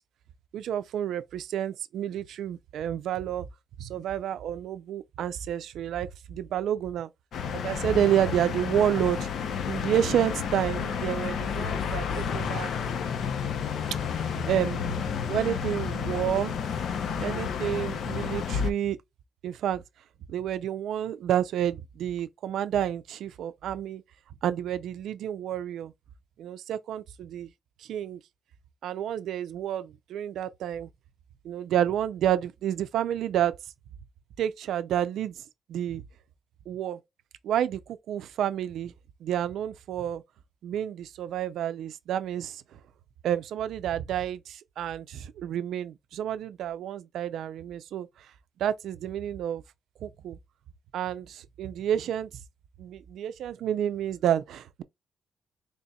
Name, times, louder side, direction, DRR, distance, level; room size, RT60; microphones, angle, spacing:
voice 1, 0.5-3.5 3.8-7.1 7.6-9.3 9.7-12.7 14.1-14.8 15.3-16.5 17.2-19.0 19.4-19.8 20.3-24.0 24.4-25.9 26.4-27.5 27.8-28.2 28.8-30.9 31.4-33.5 34.4-35.4 35.7-36.0 36.7-37.0 37.4-38.9 39.2-40.2 40.6-42.8 43.2-48.3 48.6-49.6 50.0-50.4 50.9-52.3 52.8-54.8, right 10 dB, 85° right, 0.4 m, -29 dB
sound 1, 7.3-18.7, left 7 dB, 70° left, 0.6 m, -31 dB
4.0 x 3.3 x 2.3 m
cardioid pair, 130°, 0 cm